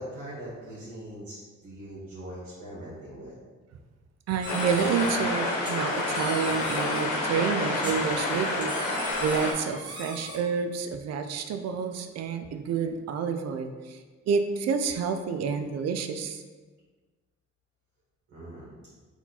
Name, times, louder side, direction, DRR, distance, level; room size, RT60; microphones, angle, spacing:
voice 1, 0.0-3.4 18.3-18.7, right 1 dB, 80° right, -8 dB, 1.4 m, -41 dB
voice 2, 4.3-8.9 9.2-14.0 14.3-16.4, right 6 dB, 60° right, 7 dB, 0.5 m, -29 dB
sound 1, 4.4-5.1 5.6-7.0 7.8-10.4, equal, 15° right, 1.1 m, -40 dB
sound 2, 4.5-9.5, left 2 dB, 80° left, 1.1 m, -29 dB
4.2 x 2.9 x 4.0 m, 1.4 s
cardioid pair, 90°, 30 cm